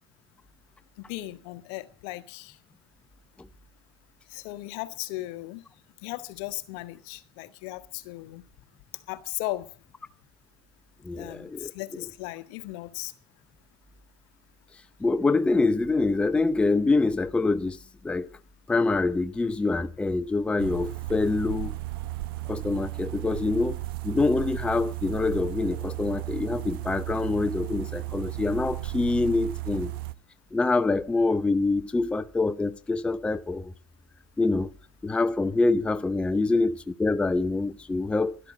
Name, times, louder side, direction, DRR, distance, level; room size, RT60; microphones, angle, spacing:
voice 1, 1.0-2.6 4.3-5.6 6.0-8.4 9.1-9.7 11.1-13.1, left 17 dB, 55° left, 1.4 m, -37 dB
voice 2, 11.0-11.7 15.0-17.8 18.0-18.3 18.7-21.7 22.5-23.8 24.0-29.9 30.5-33.7 34.4-34.7 35.0-38.4, left 3 dB, 10° left, 0.6 m, -25 dB
sound 1, 20.6-30.1, right 19 dB, 60° right, 1.0 m, -34 dB
12.5 x 12.0 x 7.4 m
hypercardioid pair, 110°, 13 cm